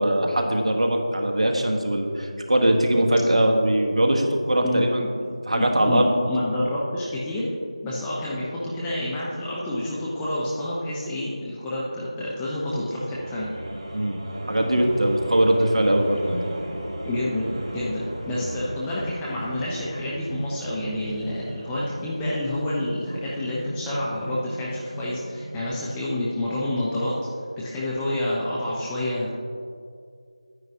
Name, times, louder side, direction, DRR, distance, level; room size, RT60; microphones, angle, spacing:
voice 1, 0.0-4.9 5.5-6.1 13.9-14.2 14.5-16.4, right 1 dB, 65° right, 3 dB, 1.1 m, -21 dB
voice 2, 4.6-5.2 5.6-7.5 7.8-13.5 17.0-17.5 17.7-27.1 27.6-29.3, left 1 dB, 5° left, -7 dB, 0.4 m, -28 dB
sound 1, 13.0-26.2, right 1 dB, 40° right, 1.0 m, -36 dB
9.5 x 9.0 x 2.7 m, 2.3 s
figure-of-eight pair, 170°, 4 cm